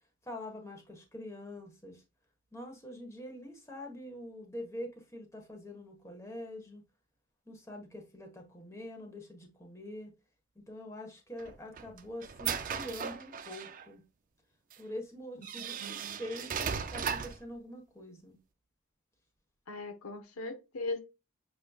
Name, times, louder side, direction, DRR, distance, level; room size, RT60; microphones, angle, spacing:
voice 1, 0.2-2.0 2.5-6.8 7.5-10.1 10.5-14.0 14.8-18.4, left 1 dB, 15° left, 1.2 m, -45 dB
sound 1, 11.4-13.9 14.7-14.8 15.4-17.5, right 7 dB, 40° right, 0.5 m, -37 dB
voice 2, 15.6-16.2 19.7-21.0, left 2 dB, 90° left, 1.1 m, -39 dB
6.7 x 3.2 x 2.3 m
head